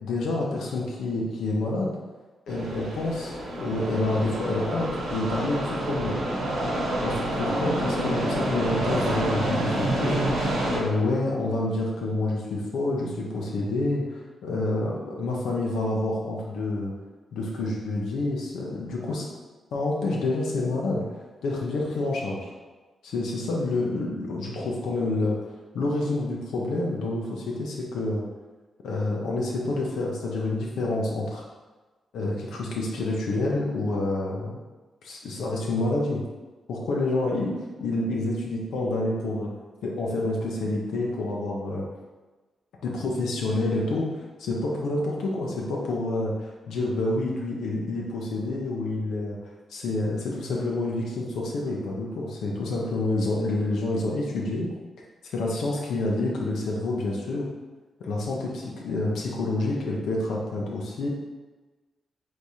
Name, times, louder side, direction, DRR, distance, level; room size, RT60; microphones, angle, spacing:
voice 1, 0.0-1.9 2.5-6.2 7.0-16.9 17.3-19.2 19.7-21.0 21.4-22.5 23.0-25.4 25.7-28.2 28.8-31.4 32.1-34.6 35.0-36.2 36.7-39.5 39.8-41.8 42.8-44.1 44.4-49.4 49.7-54.7 55.3-57.5 58.0-61.1, left 2 dB, 90° left, -3 dB, 0.7 m, -28 dB
sound 1, 2.5-10.8, right 1 dB, 85° right, 1.0 m, -28 dB
3.5 x 3.3 x 4.1 m, 1.3 s
cardioid pair, 110°, 0 cm